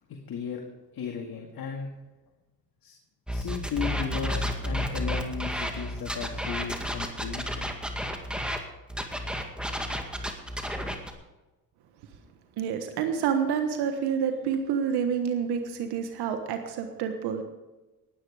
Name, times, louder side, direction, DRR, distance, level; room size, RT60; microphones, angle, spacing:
voice 1, 0.1-0.6 0.9-1.9 2.8-2.9 3.3-7.7, left 6 dB, 65° left, 2 dB, 2.0 m, -35 dB
sound 1, 3.3-8.6 8.9-11.1, equal, ahead, 2.0 m, -31 dB
voice 2, 12.6-17.4, right 7 dB, 85° right, 6 dB, 1.4 m, -28 dB
20.0 x 9.2 x 5.0 m, 1.1 s
cardioid pair, 75°, 38 cm